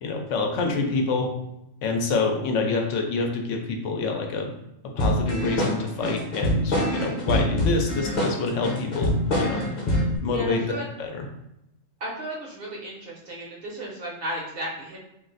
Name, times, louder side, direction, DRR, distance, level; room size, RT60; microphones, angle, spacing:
voice 1, 0.0-1.3 1.8-4.5 5.0-9.6 10.2-11.2, left 3 dB, 75° left, 2 dB, 0.9 m, -27 dB
sound 1, 5.0-10.2, equal, 40° left, 0.8 m, -25 dB
voice 2, 10.2-10.9 12.0-15.0, right 1 dB, 55° right, -2 dB, 0.8 m, -34 dB
2.5 x 2.4 x 3.8 m, 0.86 s
omnidirectional pair, 1.3 m